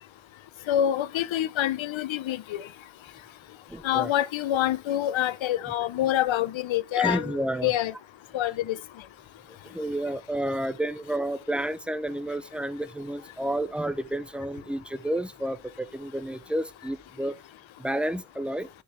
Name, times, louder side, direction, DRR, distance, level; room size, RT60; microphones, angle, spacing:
voice 1, 0.7-2.7 3.8-7.3 7.6-7.9 8.3-8.8, left 12 dB, 90° left, 0.7 m, -26 dB
voice 2, 3.7-4.1 6.9-7.7 9.6-17.4 17.8-18.7, right 1 dB, 5° right, 0.5 m, -30 dB
10.0 x 4.9 x 3.2 m
wide cardioid pair, 140°, 45 cm